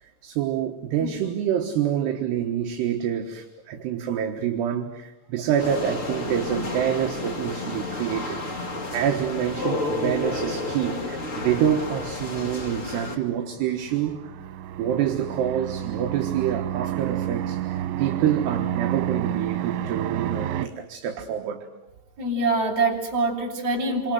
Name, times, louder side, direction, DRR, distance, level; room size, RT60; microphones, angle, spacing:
voice 1, 0.0-8.4 8.9-14.3 14.8-21.7, right 9 dB, 70° right, 3.3 m, -27 dB
sound 1, 5.6-13.2, left 2 dB, 30° left, 1.4 m, -31 dB
sound 2, 13.3-20.7, right 12 dB, 90° right, 3.6 m, -30 dB
voice 2, 22.2-24.1, right 2 dB, 35° right, 7.5 m, -24 dB
28.0 x 25.5 x 7.8 m
omnidirectional pair, 5.3 m